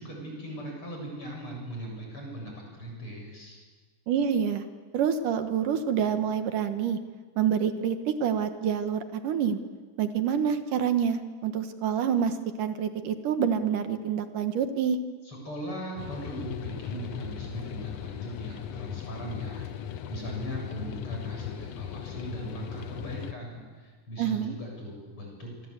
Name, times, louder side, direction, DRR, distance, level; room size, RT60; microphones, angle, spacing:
voice 1, 0.0-3.6 15.2-25.7, right 1 dB, 40° left, 0 dB, 8.4 m, -39 dB
voice 2, 4.1-4.6 4.9-7.0 7.4-9.6 10.0-15.0 24.2-24.6, right 8 dB, 75° right, 8 dB, 2.8 m, -27 dB
sound 1, 16.0-23.3, left 10 dB, 65° left, 1.8 m, -38 dB
27.5 x 23.5 x 8.2 m, 1.4 s
omnidirectional pair, 3.8 m